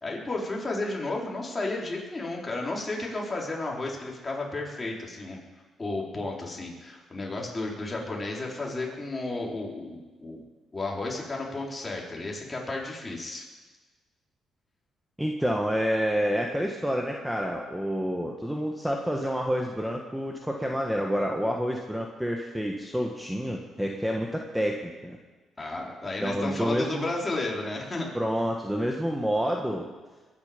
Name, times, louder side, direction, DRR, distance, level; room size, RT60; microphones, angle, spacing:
voice 1, 0.0-5.4 5.8-10.4 10.7-13.5 25.6-28.1, left 2 dB, 25° left, -2 dB, 4.1 m, -33 dB
voice 2, 15.2-25.2 26.2-27.1 28.1-29.9, equal, 5° right, 1 dB, 1.5 m, -28 dB
21.5 x 10.0 x 5.2 m, 1.3 s
cardioid pair, 90°, 0 cm